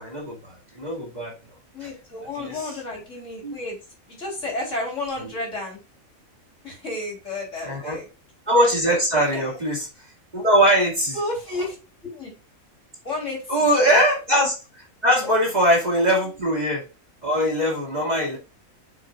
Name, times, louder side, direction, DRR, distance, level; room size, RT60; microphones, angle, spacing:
voice 1, 0.0-1.3 1.8-1.9 2.4-2.6 3.4-3.5 7.6-8.0 8.5-9.8 10.3-11.2 13.5-16.8 17.2-18.4, equal, 30° right, -2 dB, 2.3 m, -21 dB
voice 2, 1.7-3.8 4.1-5.8 6.6-8.1 9.3-9.6 11.1-11.8 12.1-12.3 13.0-14.0 15.2-15.3, left 2 dB, 55° left, -2 dB, 4.0 m, -31 dB
7.3 x 6.7 x 2.4 m, 0.31 s
omnidirectional pair, 1.5 m